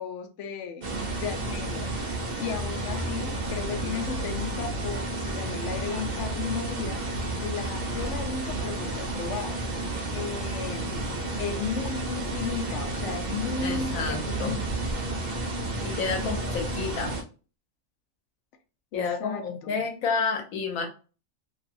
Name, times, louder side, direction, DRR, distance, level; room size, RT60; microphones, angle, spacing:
voice 1, 0.0-1.9 2.4-7.0 7.4-9.6 10.1-14.8 16.2-16.6 18.9-19.8, left 6 dB, 70° left, 0.8 m, -35 dB
sound 1, 0.8-17.2, right 2 dB, 50° right, 0.6 m, -31 dB
voice 2, 13.6-14.6 15.8-17.2 18.9-20.9, left 5 dB, 90° left, 1.1 m, -30 dB
2.8 x 2.6 x 2.5 m
omnidirectional pair, 1.4 m